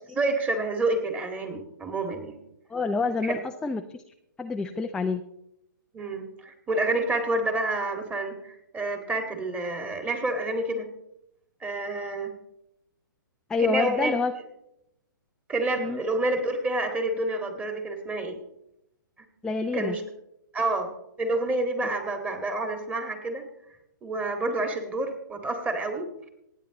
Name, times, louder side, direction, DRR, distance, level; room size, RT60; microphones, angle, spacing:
voice 1, 0.1-2.4 3.2-3.4 5.9-10.9 11.6-12.3 13.6-14.1 15.5-18.4 19.7-20.0 20.5-23.4 24.0-26.3, right 2 dB, 15° right, 5 dB, 1.9 m, -28 dB
voice 2, 2.7-4.0 4.4-5.2 13.5-14.3 15.8-16.0 19.4-20.0, left 4 dB, 5° left, 5 dB, 0.5 m, -27 dB
27.0 x 9.2 x 3.0 m, 0.83 s
figure-of-eight pair, 130°, 11 cm